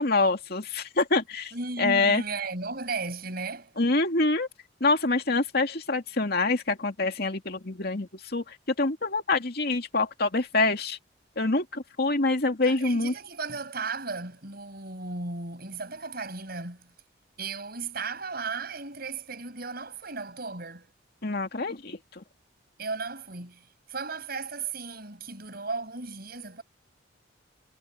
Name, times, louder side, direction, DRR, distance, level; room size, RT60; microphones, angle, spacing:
voice 1, 0.0-2.2 3.8-4.5 4.8-11.0 11.4-13.1 21.2-22.2, left 3 dB, 55° left, 2.5 m, -26 dB
voice 2, 1.5-3.7 12.6-16.8 17.4-20.9 22.8-26.6, right 4 dB, 50° right, 6.7 m, -35 dB
head